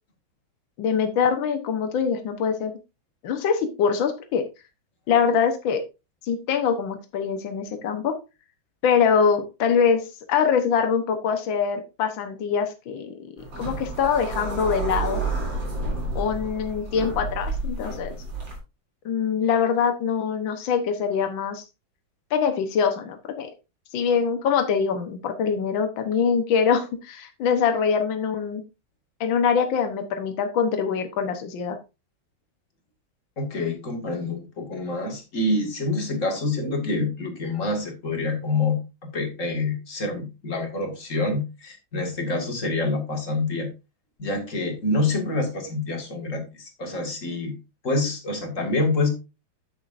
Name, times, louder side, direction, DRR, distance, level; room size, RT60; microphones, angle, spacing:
voice 1, 0.8-2.7 3.2-4.4 5.1-5.8 6.2-8.2 8.8-13.2 13.6-15.2 16.2-18.1 19.1-21.6 22.3-23.5 23.9-28.6 29.2-31.8, left 6 dB, 75° left, 7 dB, 1.8 m, -23 dB
sound 1, 13.4-18.6, right 3 dB, 70° right, 3.9 m, -30 dB
voice 2, 33.4-38.8 39.1-43.7 44.2-47.6 47.8-49.1, left 2 dB, 40° left, 3 dB, 2.3 m, -26 dB
9.2 x 8.9 x 2.6 m, 0.27 s
omnidirectional pair, 2.1 m